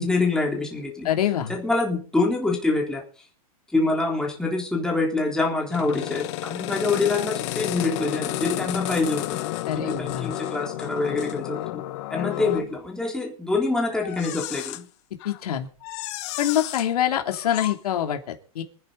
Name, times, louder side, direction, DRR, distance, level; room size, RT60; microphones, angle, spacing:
voice 1, 0.0-1.1 1.5-3.0 3.7-9.4 9.7-11.8 12.1-14.9, left 3 dB, 5° left, -1 dB, 3.5 m, -25 dB
voice 2, 1.0-1.5 9.7-10.3 15.2-15.7 16.4-18.6, left 10 dB, 75° left, 5 dB, 3.0 m, -25 dB
sound 1, 5.7-12.7 13.9-14.8 15.2-15.4 15.8-16.9 17.3-17.8, left 16 dB, 50° left, 1.0 m, -32 dB
26.5 x 10.0 x 4.0 m, 0.40 s
supercardioid pair, 150°, 19 cm